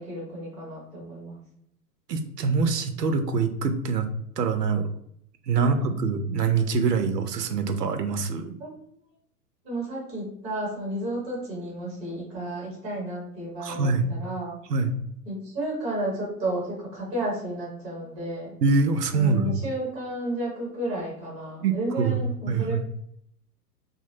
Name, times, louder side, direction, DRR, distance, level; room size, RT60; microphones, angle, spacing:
voice 1, 0.0-1.4 5.5-5.9 8.6-8.7 9.6-14.6 15.2-18.5 19.1-22.8, right 1 dB, 10° right, -4 dB, 0.3 m, -32 dB
voice 2, 2.1-4.1 4.4-4.9 5.5-8.5 13.6-14.1 14.7-14.9 18.6-19.5 21.6-22.2 22.5-22.8, right 4 dB, 80° right, 8 dB, 0.6 m, -24 dB
2.8 x 2.5 x 2.6 m, 0.72 s
figure-of-eight pair, 100°, 48 cm